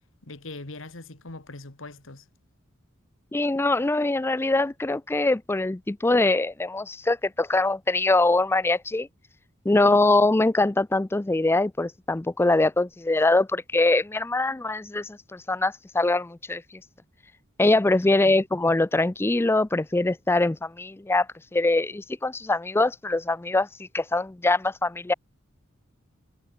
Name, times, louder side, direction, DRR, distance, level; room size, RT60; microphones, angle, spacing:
voice 1, 0.2-2.3 18.0-18.4, left 2 dB, 70° left, 2.1 m, -41 dB
voice 2, 3.3-9.1 9.7-16.6 17.6-21.3 21.5-23.7 23.9-25.1, left 2 dB, 10° left, 0.4 m, -23 dB
head